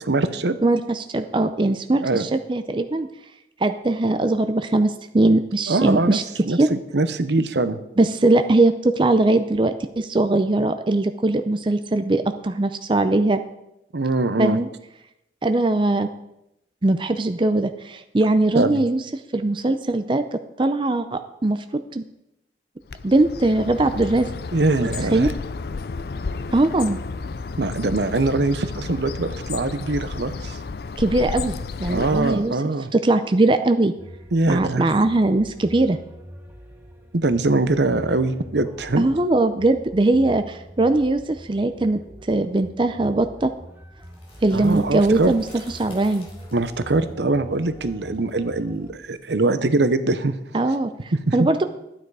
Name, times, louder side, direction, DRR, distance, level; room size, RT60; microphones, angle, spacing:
voice 1, 0.1-0.6 2.0-2.3 5.7-6.2 6.4-7.8 13.9-14.6 18.5-18.8 24.5-25.3 27.6-30.6 31.9-32.9 34.3-34.8 37.1-39.0 44.5-45.3 46.5-50.4 51.3-51.4, right 2 dB, 75° right, 11 dB, 0.8 m, -22 dB
voice 2, 0.6-3.1 3.6-6.2 6.6-6.7 8.0-13.4 14.4-14.7 15.4-16.1 16.8-19.0 19.3-21.6 21.9-22.0 23.0-24.3 25.0-25.3 26.5-27.0 31.0-31.5 31.8-32.5 32.9-33.9 34.5-36.0 39.0-42.0 42.3-43.5 44.4-45.4 45.8-46.3 50.5-51.6, right 2 dB, 25° right, 9 dB, 0.5 m, -20 dB
Bird, 22.9-32.6, left 4 dB, 60° left, 0.4 m, -32 dB
sound 1, 34.0-48.9, equal, 10° right, 1.2 m, -43 dB
sound 2, 44.0-49.8, left 1 dB, 30° left, 3.4 m, -47 dB
12.5 x 9.2 x 4.8 m, 0.85 s
head